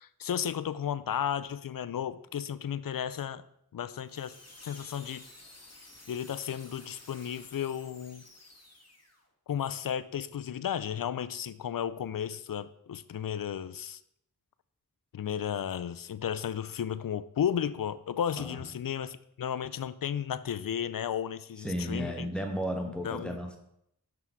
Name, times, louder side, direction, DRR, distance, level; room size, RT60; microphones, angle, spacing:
voice 1, 0.0-3.4 3.7-4.3 4.6-5.2 6.1-8.2 9.5-14.0 15.1-22.3 23.0-23.4, left 9 dB, 65° left, 14 dB, 0.5 m, -34 dB
sound 1, 4.0-9.2, left 2 dB, 45° left, 1.8 m, -53 dB
voice 2, 21.6-23.6, equal, 5° left, 3 dB, 1.3 m, -34 dB
6.0 x 5.7 x 4.6 m, 0.76 s
wide cardioid pair, 40°, 37 cm